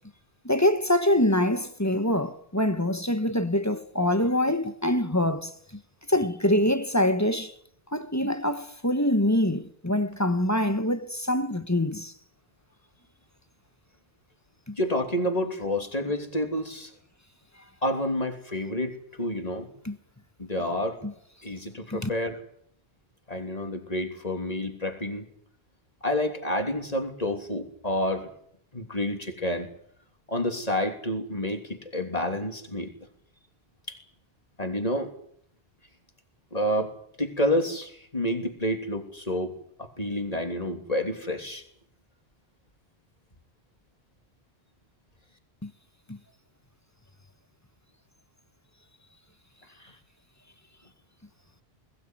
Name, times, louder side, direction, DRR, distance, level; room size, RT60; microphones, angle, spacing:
voice 1, 0.4-5.8 6.1-7.5 7.9-12.1 14.7-14.8 19.8-20.0 21.0-21.1 21.9-22.1 45.6-45.7 46.1-46.2, left 1 dB, 15° left, 1.3 m, -25 dB
voice 2, 14.8-16.9 17.8-19.7 20.4-21.0 21.4-22.4 23.3-25.2 26.0-28.3 28.7-29.7 30.3-32.9 33.9-34.0 34.6-35.1 36.5-41.6 49.8-49.9, left 1 dB, 35° left, 3.3 m, -29 dB
21.5 x 16.5 x 9.5 m
omnidirectional pair, 1.1 m